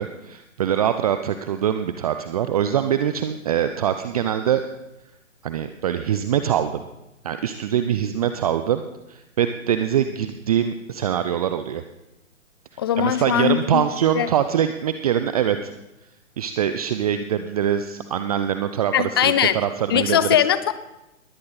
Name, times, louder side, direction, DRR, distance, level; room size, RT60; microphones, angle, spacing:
voice 1, 0.0-4.6 5.4-6.7 7.2-8.8 9.1-11.8 13.0-15.7 16.4-20.3, right 9 dB, 30° right, 9 dB, 0.7 m, -23 dB
voice 2, 12.8-13.8 14.1-14.3 18.9-19.6 19.9-20.7, left 10 dB, 20° left, 14 dB, 0.5 m, -20 dB
21.5 x 16.0 x 4.1 m, 0.95 s
figure-of-eight pair, 130°, 39 cm